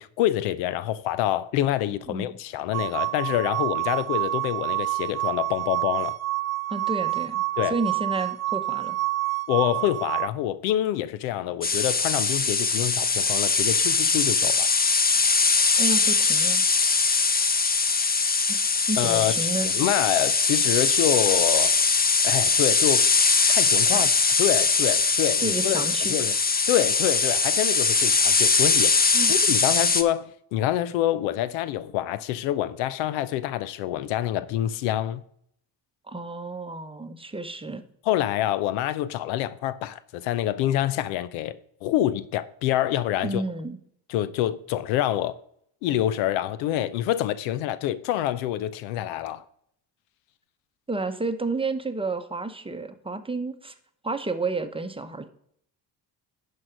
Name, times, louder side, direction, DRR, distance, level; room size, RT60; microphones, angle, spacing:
voice 1, 0.0-6.2 7.6-7.7 9.5-14.7 19.0-19.3 19.6-21.8 22.2-23.1 23.5-24.1 24.4-26.4 26.7-35.2 38.1-41.6 41.8-43.4 44.1-45.4 45.8-49.4, left 12 dB, 90° left, 0.6 m, -26 dB
voice 2, 2.1-2.4 6.7-9.0 15.8-16.6 18.5-19.7 23.9-24.1 24.9-25.0 25.4-26.1 29.1-29.4 36.1-37.8 43.2-43.8 50.9-53.7 54.0-55.3, right 3 dB, 10° right, 0.9 m, -31 dB
sound 1, 2.7-10.3, right 17 dB, 35° right, 0.5 m, -28 dB
sound 2, 11.6-30.0, left 4 dB, 20° left, 0.7 m, -21 dB
11.0 x 4.7 x 5.1 m
supercardioid pair, 70°, 45 cm